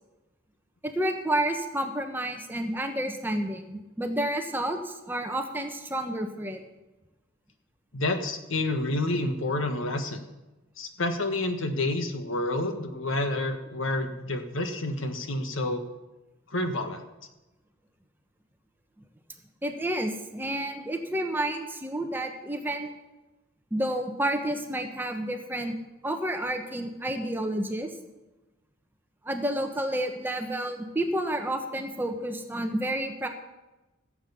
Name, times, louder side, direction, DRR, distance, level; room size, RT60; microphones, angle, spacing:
voice 1, 0.9-6.6 19.6-22.9 23.7-25.7 26.0-27.9 29.2-33.3, right 1 dB, 10° right, 5 dB, 1.1 m, -30 dB
voice 2, 7.9-10.2 10.8-15.8 16.5-17.0, left 2 dB, 75° left, 7 dB, 1.5 m, -29 dB
16.0 x 7.8 x 6.9 m, 1.0 s
head